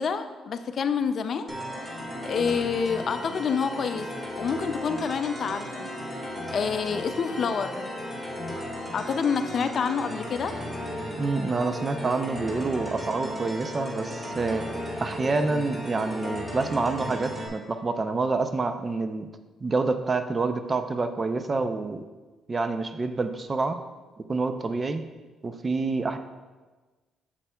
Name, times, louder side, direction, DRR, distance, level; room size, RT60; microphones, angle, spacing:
voice 1, 0.0-1.5 2.2-4.1 4.3-5.9 6.5-7.9 8.9-10.5, left 6 dB, 55° left, 9 dB, 0.4 m, -28 dB
sound 1, 1.5-17.5, equal, 15° right, 1.8 m, -35 dB
voice 2, 11.2-14.7 15.0-19.3 19.6-22.0 22.5-23.8 24.3-25.0 25.4-26.2, right 3 dB, 30° right, 9 dB, 0.5 m, -27 dB
8.0 x 7.4 x 2.3 m, 1.3 s
cardioid pair, 90°, 0 cm